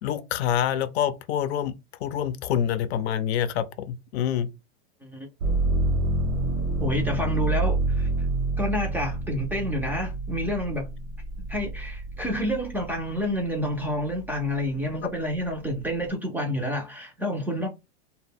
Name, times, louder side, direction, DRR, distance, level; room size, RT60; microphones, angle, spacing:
voice 1, 0.0-1.7 2.0-4.5, left 9 dB, 80° left, 0.5 m, -26 dB
sound 1, 5.4-13.2 13.7-14.5, right 2 dB, 75° right, 0.7 m, -28 dB
voice 2, 6.8-8.1 8.6-10.9 11.5-17.7, equal, 5° right, 0.4 m, -29 dB
2.1 x 2.0 x 3.4 m
supercardioid pair, 135°, 32 cm